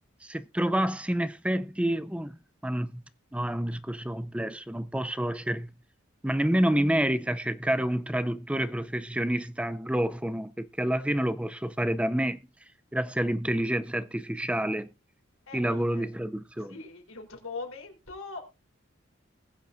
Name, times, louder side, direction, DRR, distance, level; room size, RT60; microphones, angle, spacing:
voice 1, 0.2-2.3 2.6-3.0 3.3-5.7 6.2-12.4 12.9-14.9 15.5-16.7, right 1 dB, 5° right, 0.5 m, -28 dB
voice 2, 15.5-16.1 16.6-18.4, left 3 dB, 90° left, 3.8 m, -41 dB
20.5 x 7.2 x 2.6 m
head